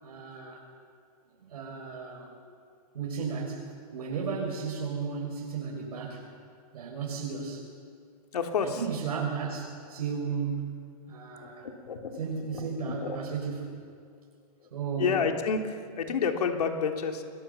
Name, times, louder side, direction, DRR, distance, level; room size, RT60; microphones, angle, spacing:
voice 1, 0.0-0.6 1.4-2.3 2.9-6.2 6.7-7.7 8.6-10.8 11.1-11.7 12.2-13.8 14.7-15.2, right 5 dB, 80° right, -1 dB, 6.1 m, -34 dB
voice 2, 8.3-8.8 11.4-12.3 12.5-13.3 14.6-14.7 15.0-17.2, left 6 dB, 85° left, 3 dB, 3.3 m, -30 dB
28.5 x 22.0 x 7.1 m, 2.2 s
hypercardioid pair, 145°, 19 cm